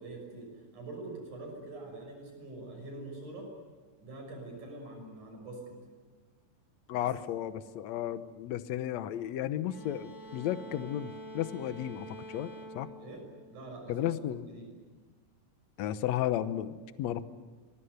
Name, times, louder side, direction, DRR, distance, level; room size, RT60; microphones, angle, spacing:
voice 1, 0.0-3.5 4.0-5.8 6.9-7.1 13.0-13.2 13.5-14.7, right 2 dB, 70° right, 2 dB, 7.9 m, -44 dB
voice 2, 6.9-12.9 13.9-14.5 15.8-17.2, left 11 dB, 70° left, 12 dB, 2.0 m, -34 dB
sound 1, 9.7-14.1, right 1 dB, 5° right, 5.6 m, -47 dB
24.5 x 22.0 x 8.1 m, 1.4 s
omnidirectional pair, 3.7 m